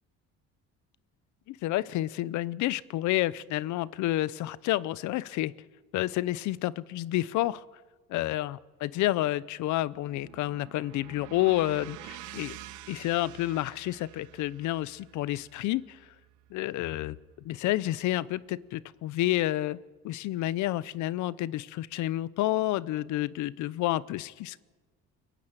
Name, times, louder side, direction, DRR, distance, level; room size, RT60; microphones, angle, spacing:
voice 1, 1.5-5.5 5.9-7.6 8.1-12.6 12.9-16.0 16.5-17.2 17.4-19.8 20.0-24.6, left 15 dB, 75° left, 18 dB, 0.7 m, -29 dB
sound 1, 9.5-17.7, right 14 dB, 85° right, 1.0 m, -49 dB
29.5 x 10.5 x 9.0 m, 1.3 s
cardioid pair, 155°, 29 cm